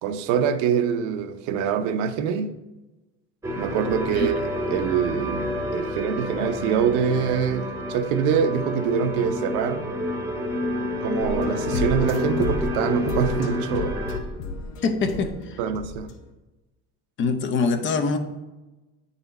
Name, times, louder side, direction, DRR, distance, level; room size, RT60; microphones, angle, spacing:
voice 1, 0.0-2.5 3.6-4.4 4.7-9.8 11.0-14.0 15.6-16.1, right 7 dB, 75° right, 0.7 m, -24 dB
sound 1, 3.4-14.2, left 1 dB, 10° right, 0.9 m, -29 dB
sound 2, 11.2-16.2, left 2 dB, 90° left, 1.1 m, -32 dB
voice 2, 14.8-15.6 17.2-18.2, left 4 dB, 40° left, 0.7 m, -24 dB
8.8 x 4.2 x 4.0 m
cardioid pair, 145°, 30 cm